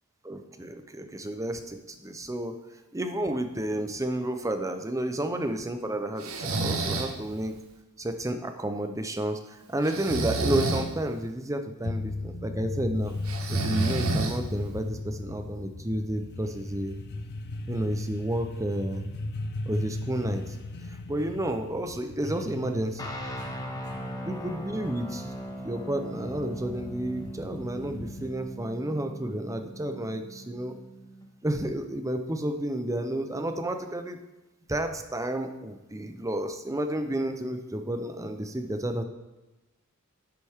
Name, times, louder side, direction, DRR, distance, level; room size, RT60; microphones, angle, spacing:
voice 1, 0.2-2.6 2.9-7.6 8.0-13.2 13.5-17.0 17.7-19.1 19.7-20.4 21.1-23.1 24.2-25.2 25.6-30.8 31.4-34.2 34.7-39.0, right 1 dB, 15° right, 7 dB, 0.7 m, -31 dB
Breathing, 6.2-7.2 9.8-10.9 13.3-14.7, right 3 dB, 75° right, 1.1 m, -28 dB
sound 1, 11.8-28.6, left 2 dB, 50° left, 0.6 m, -38 dB
sound 2, 23.0-31.2, right 1 dB, 15° left, 1.3 m, -40 dB
11.0 x 8.0 x 3.6 m, 1.1 s
head